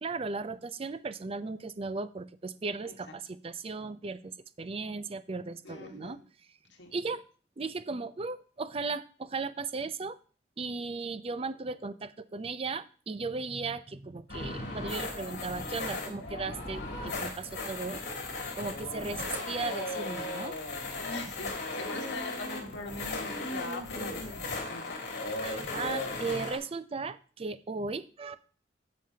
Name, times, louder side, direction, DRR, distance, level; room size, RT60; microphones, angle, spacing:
voice 1, 0.0-6.2 6.9-7.3 7.6-10.2 10.6-18.0 18.6-20.6 25.4-28.4, right 4 dB, 35° right, 12 dB, 0.5 m, -36 dB
voice 2, 5.6-6.2 6.8-6.9 21.0-25.0, left 2 dB, 85° left, 2 dB, 1.5 m, -42 dB
sound 1, 14.3-26.6, left 2 dB, 65° left, 3.5 m, -36 dB
15.0 x 5.3 x 2.8 m, 0.39 s
head